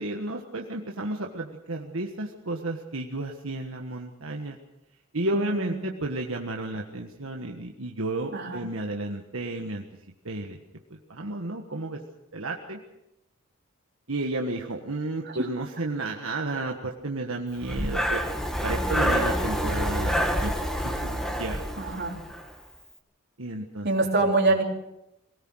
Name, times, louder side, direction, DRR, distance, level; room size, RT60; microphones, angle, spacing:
voice 1, 0.0-4.6 5.1-9.8 10.2-10.6 11.1-12.0 12.3-12.8 14.1-18.2 18.6-20.2 20.4-20.5 21.0-21.6 23.4-23.9 24.2-24.3, right 2 dB, 80° right, 1 dB, 1.6 m, -32 dB
voice 2, 5.3-5.9 8.3-8.6 15.3-15.4 18.7-19.4 20.0-20.2 21.8-22.2 23.8-24.6, right 2 dB, 50° right, 0 dB, 3.6 m, -26 dB
Breathing, 17.6-22.5, equal, ahead, 2.0 m, -27 dB
23.5 x 18.0 x 6.4 m, 0.88 s
head